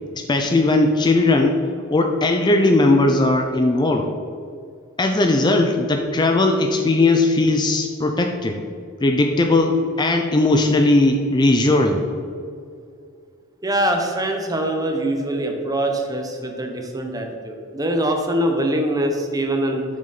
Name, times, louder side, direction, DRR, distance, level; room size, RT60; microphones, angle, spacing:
voice 1, 0.2-1.6 1.9-4.1 5.0-8.6 9.0-12.0, left 2 dB, 20° left, 4 dB, 0.4 m, -18 dB
voice 2, 13.6-19.8, right 1 dB, 20° right, 3 dB, 0.8 m, -23 dB
7.0 x 6.5 x 4.1 m, 2.4 s
head